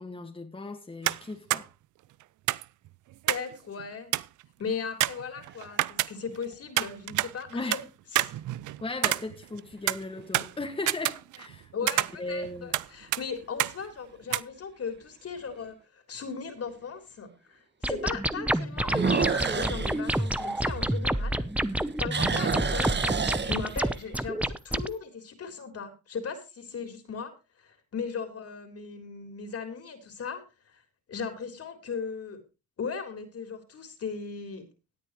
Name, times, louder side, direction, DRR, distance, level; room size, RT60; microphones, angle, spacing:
voice 1, 0.0-1.7 7.5-7.8 8.3-8.4 8.8-11.7 12.2-12.7, left 2 dB, 15° left, 1.8 m, -37 dB
sound 1, 1.0-1.2 1.5-1.6 2.5-3.5 3.8-3.9 4.1-4.4 5.0-6.4 6.8-7.8 8.1-9.6 9.9-11.6 11.9-12.9 13.1-13.2 13.6-13.8 14.3-14.4, right 16 dB, 75° right, 0.6 m, -28 dB
voice 2, 3.3-4.1 4.6-7.8 8.1-8.3 11.7-23.1 23.4-27.3 27.6-30.4 30.7-30.8 31.1-32.4 32.8-34.7, left 5 dB, 50° left, 3.8 m, -37 dB
sound 2, 5.2-5.9 6.5-6.6 11.8-12.3 12.8-12.9 13.4-13.5 13.8-13.9 15.4-15.5 18.8-21.4 21.7-24.1, right 5 dB, 35° right, 1.7 m, -30 dB
sound 3, 17.8-24.9, right 1 dB, 5° right, 0.7 m, -29 dB
17.5 x 9.9 x 3.1 m
cardioid pair, 90°, 30 cm